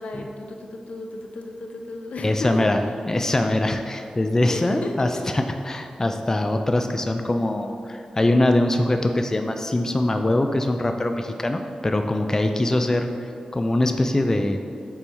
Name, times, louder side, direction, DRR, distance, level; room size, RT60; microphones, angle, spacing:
voice 1, 0.0-2.6 4.5-5.1, left 2 dB, 80° left, 3 dB, 0.6 m, -34 dB
voice 2, 2.2-2.8 3.1-5.1 5.3-13.1 13.5-14.6, left 1 dB, 25° left, 5 dB, 0.3 m, -22 dB
5.5 x 4.1 x 4.5 m, 2.4 s
wide cardioid pair, 95°, 2 cm